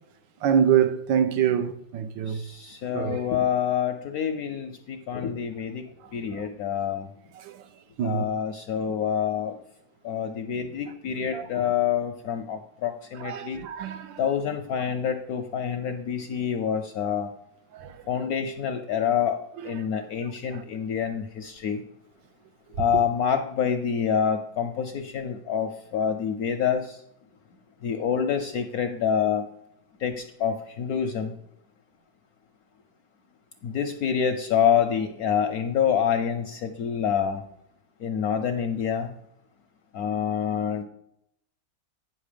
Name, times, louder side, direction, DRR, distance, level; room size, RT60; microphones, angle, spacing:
voice 1, 0.4-2.5 2.9-3.2 6.0-6.4 7.3-7.7 8.0-8.2 11.2-11.5 13.1-14.2 17.7-18.0 19.6-19.8 20.2-20.6 22.7-23.0, right 8 dB, 75° right, 1.3 m, -26 dB
voice 2, 2.3-5.8 6.1-7.1 8.0-9.5 10.0-13.6 14.2-17.3 18.1-19.4 19.6-21.8 22.8-27.0 27.8-29.5 30.0-31.3 33.6-37.4 38.0-39.1 39.9-40.8, left 8 dB, 70° left, 0.9 m, -27 dB
9.3 x 5.5 x 5.1 m
omnidirectional pair, 2.1 m